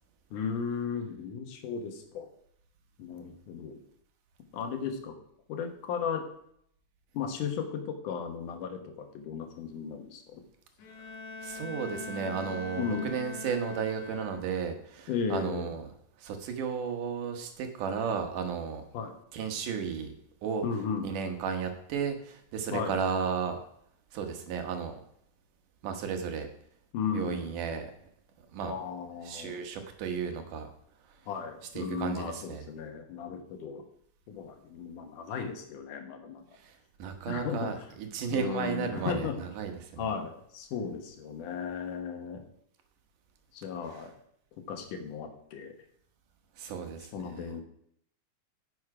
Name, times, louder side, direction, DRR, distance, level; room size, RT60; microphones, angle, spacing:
voice 1, 0.3-2.3 3.0-3.8 4.5-5.2 5.5-6.3 7.1-10.4 12.8-13.2 15.1-15.7 18.9-19.1 20.6-21.1 22.7-23.0 26.9-27.4 28.7-29.6 31.3-33.8 34.3-36.4 37.3-37.9 38.3-39.4 40.0-42.4 43.5-44.1 44.7-45.7 47.1-47.6, left 6 dB, 85° left, 5 dB, 2.8 m, -35 dB
Bowed string instrument, 10.8-14.7, left 4 dB, 65° left, 2.3 m, -42 dB
voice 2, 11.4-15.9 16.2-18.8 19.3-20.1 20.4-20.6 21.0-23.6 24.1-25.0 25.8-26.5 27.1-27.9 28.5-28.7 29.3-30.7 31.8-32.6 36.6-36.7 37.0-40.1 46.6-47.5, right 6 dB, 90° right, 5 dB, 2.8 m, -34 dB
9.9 x 7.2 x 4.8 m, 0.69 s
omnidirectional pair, 3.5 m